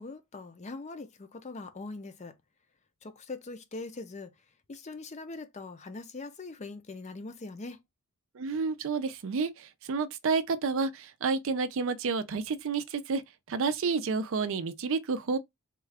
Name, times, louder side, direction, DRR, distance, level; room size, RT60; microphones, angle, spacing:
voice 1, 0.0-2.3 3.0-4.3 4.7-7.8, left 3 dB, 30° left, 0.5 m, -42 dB
voice 2, 8.4-13.2 13.5-15.4, right 4 dB, 60° right, 0.4 m, -30 dB
3.6 x 2.4 x 3.3 m
head